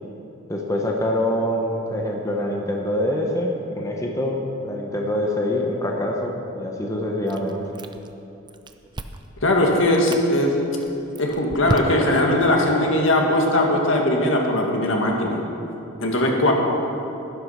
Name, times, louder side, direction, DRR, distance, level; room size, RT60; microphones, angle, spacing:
voice 1, 0.5-4.4 4.6-7.6, left 1 dB, 15° left, 0 dB, 1.0 m, -25 dB
Chewing mastication, 7.3-8.2 8.5-9.3 9.8-10.3 10.8-12.3, right 2 dB, 20° right, 0.5 m, -31 dB
voice 2, 9.4-10.6 11.2-15.4 16.0-16.5, left 1 dB, 75° left, 0 dB, 1.9 m, -19 dB
11.5 x 11.0 x 5.7 m, 2.8 s
head